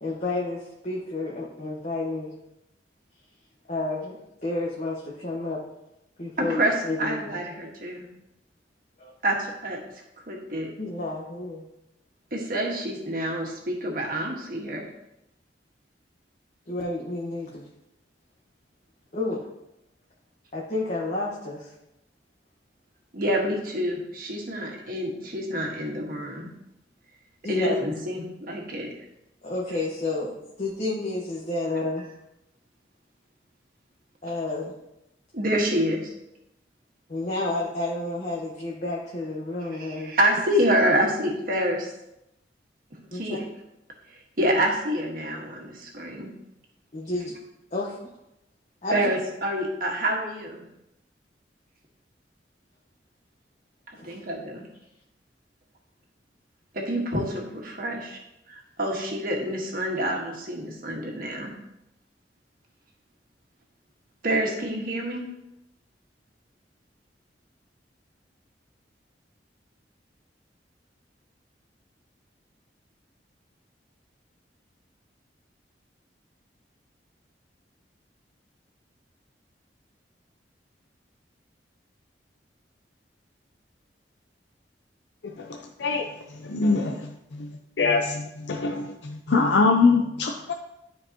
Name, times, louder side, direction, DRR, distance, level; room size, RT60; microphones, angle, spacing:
voice 1, 0.0-2.3 3.7-5.6 6.2-7.4 9.0-9.1 10.8-11.7 16.7-17.7 19.1-19.4 20.5-21.7 27.4-27.7 29.4-32.1 34.2-34.7 37.1-40.1 43.1-43.4 46.9-47.3 47.7-48.0 48.8-49.0 54.0-54.2, left 2 dB, 40° left, -4 dB, 1.2 m, -30 dB
voice 2, 6.4-8.0 9.2-9.8 10.3-10.7 12.3-14.8 23.1-26.5 27.5-28.9 35.3-36.1 39.7-41.9 43.1-43.4 44.4-46.3 48.9-50.6 54.0-54.6 56.7-58.2 58.5-61.5 64.2-65.3, right 1 dB, 55° right, 0 dB, 1.6 m, -27 dB
voice 3, 85.2-86.1 86.4-87.5 87.8-90.5, left 4 dB, 80° left, 3 dB, 0.5 m, -24 dB
12.5 x 4.5 x 2.9 m, 0.85 s
head